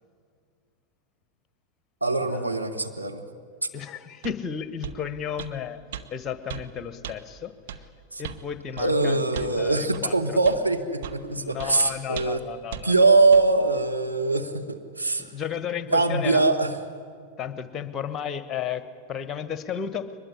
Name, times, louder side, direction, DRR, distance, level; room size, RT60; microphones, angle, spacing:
voice 1, 2.0-3.2 8.1-8.2 8.8-12.4 12.8-15.3 15.9-16.7, right 3 dB, 85° right, 2 dB, 1.6 m, -22 dB
voice 2, 3.7-5.8 6.1-7.5 8.2-10.1 11.4-12.9 15.3-16.5 17.4-18.8 19.1-20.1, left 8 dB, 25° left, 12 dB, 1.3 m, -33 dB
sound 1, 4.2-4.4 4.8-5.0 5.4-5.5 5.9-6.1 6.5-6.7 7.0-7.2 7.7-7.8 8.2-8.4 8.8-8.9 9.3-9.6 9.9-10.1 10.5-10.6 11.0-11.2 11.6-11.7 12.2-12.4 12.7-12.9 13.3-13.5, right 9 dB, 55° right, 1.2 m, -36 dB
23.0 x 20.5 x 10.0 m, 2.2 s
figure-of-eight pair, 90°, 0 cm